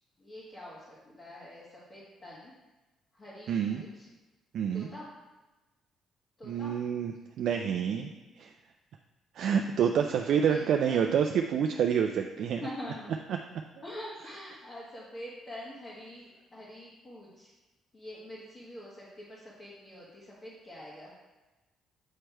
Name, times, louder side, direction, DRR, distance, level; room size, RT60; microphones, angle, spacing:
voice 1, 0.2-2.5 3.1-4.1 4.7-5.1 6.4-6.7 10.5-11.1 12.4-13.2 13.8-17.5 17.9-21.1, left 1 dB, 30° left, -7 dB, 1.4 m, -45 dB
voice 2, 3.5-3.8 4.5-4.9 6.4-8.1 8.4-8.5 9.3-12.6, right 7 dB, 65° right, 4 dB, 0.4 m, -28 dB
7.3 x 3.3 x 4.5 m, 1.1 s
cardioid pair, 110°, 0 cm